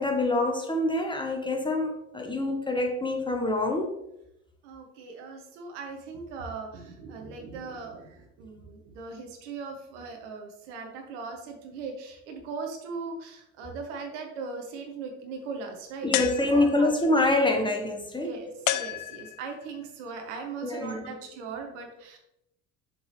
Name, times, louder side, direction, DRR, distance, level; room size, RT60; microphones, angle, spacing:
voice 1, 0.0-3.9 16.0-18.3 20.6-21.2, left 2 dB, 10° left, 2 dB, 1.3 m, -26 dB
voice 2, 4.6-16.1 16.4-16.9 18.2-22.2, right 4 dB, 65° right, 3 dB, 1.3 m, -39 dB
sound 1, 16.1-17.0 18.7-19.6, left 13 dB, 50° left, 0.5 m, -31 dB
7.1 x 5.2 x 3.4 m, 0.81 s
figure-of-eight pair, 55°, 38 cm